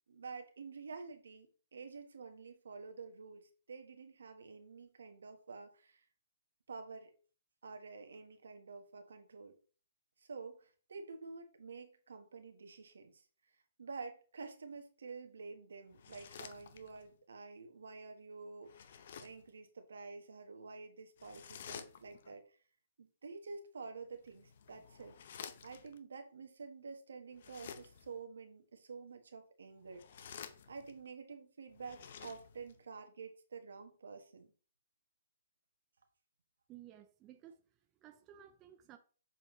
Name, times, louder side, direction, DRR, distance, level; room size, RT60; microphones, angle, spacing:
voice 1, 0.1-6.0 6.7-7.1 7.6-9.5 10.2-13.3 13.8-22.6 23.0-25.1 25.6-30.0 30.7-34.5, right 4 dB, 85° right, 1.4 m, -49 dB
sound 1, 15.9-17.1 18.6-19.5 21.2-22.3 24.1-26.0 27.3-28.2 29.8-31.1 31.7-32.8, left 7 dB, 60° left, 0.7 m, -52 dB
voice 2, 36.7-39.0, right 11 dB, 25° right, 0.6 m, -56 dB
7.1 x 4.4 x 3.2 m
hypercardioid pair, 145°, 0 cm